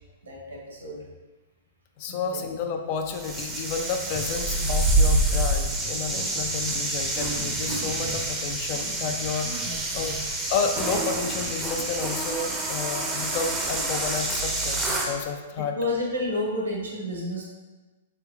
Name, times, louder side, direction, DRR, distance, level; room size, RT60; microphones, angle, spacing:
voice 1, 0.2-1.0 2.1-2.4 9.6-10.1 15.7-17.4, left 1 dB, 90° right, -2 dB, 1.1 m, -31 dB
voice 2, 2.0-10.1 10.5-15.7, left 5 dB, 45° left, 5 dB, 0.4 m, -31 dB
sound 1, 3.1-15.2, right 2 dB, 15° right, 0.6 m, -27 dB
4.4 x 3.0 x 2.4 m, 1.2 s
hypercardioid pair, 120°, 0 cm